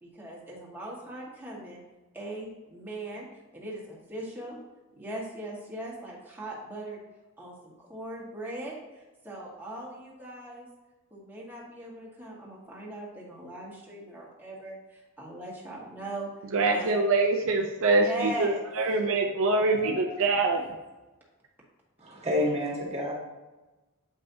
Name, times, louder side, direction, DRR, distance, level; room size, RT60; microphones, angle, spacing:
voice 1, 0.0-1.8 2.1-3.3 3.5-4.6 5.0-7.0 7.4-10.7 11.1-16.3 16.7-17.0 17.9-18.6 19.4-20.5, right 1 dB, 10° right, -5 dB, 1.6 m, -39 dB
voice 2, 16.5-20.6, right 3 dB, 65° right, 2 dB, 0.6 m, -24 dB
voice 3, 22.0-23.1, left 1 dB, 30° right, -2 dB, 1.6 m, -28 dB
8.1 x 5.4 x 2.8 m, 1.1 s
head